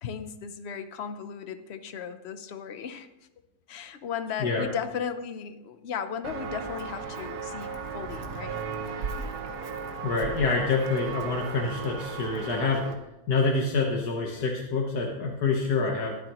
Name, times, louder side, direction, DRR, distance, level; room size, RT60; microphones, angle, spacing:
voice 1, 0.0-3.1 3.7-8.6 14.3-14.4, left 7 dB, 50° left, 10 dB, 0.9 m, -36 dB
Walk footsteps, 6.2-12.9, right 5 dB, 80° right, 1.6 m, -35 dB
voice 2, 10.0-12.8 13.3-16.2, left 4 dB, 85° left, -1 dB, 1.9 m, -26 dB
21.5 x 7.9 x 3.1 m, 0.95 s
omnidirectional pair, 1.6 m